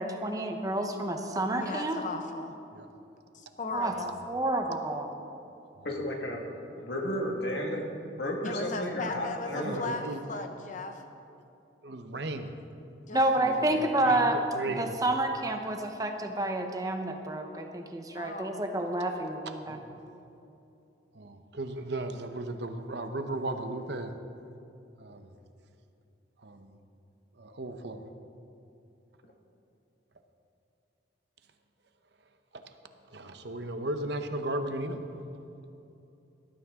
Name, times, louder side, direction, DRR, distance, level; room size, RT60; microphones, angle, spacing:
voice 1, 0.0-2.0 3.7-3.9 4.3-5.1 13.1-14.4 14.8-19.8, right 1 dB, 20° right, 4 dB, 0.9 m, -29 dB
voice 2, 1.5-2.6 3.3-4.2 8.4-11.0 13.1-14.1 18.2-18.6, left 3 dB, 40° left, 6 dB, 0.7 m, -37 dB
voice 3, 5.8-6.4 6.8-7.9 8.2-9.8, left 1 dB, 60° left, 1 dB, 2.0 m, -33 dB
voice 4, 9.6-10.2 11.8-12.5 13.4-13.5 13.8-14.2 14.5-14.9 19.7-19.8 21.1-24.1 25.0-25.3 26.4-26.7 27.4-28.0 32.5-32.6 33.1-35.0, right 2 dB, 60° right, 7 dB, 0.9 m, -35 dB
18.5 x 12.5 x 3.7 m, 2.8 s
head